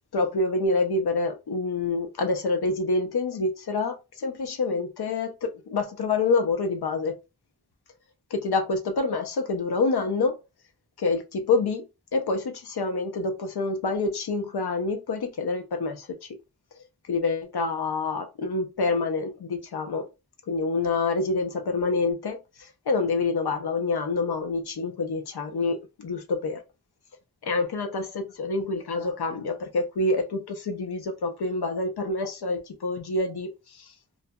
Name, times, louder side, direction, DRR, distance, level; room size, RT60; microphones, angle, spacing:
voice 1, 0.1-7.2 8.3-10.3 11.0-11.9 12.1-16.2 17.1-20.0 20.5-22.4 22.9-26.6 27.4-33.8, left 3 dB, 90° left, 0.6 m, -27 dB
2.6 x 2.6 x 2.2 m
wide cardioid pair, 60°, 37 cm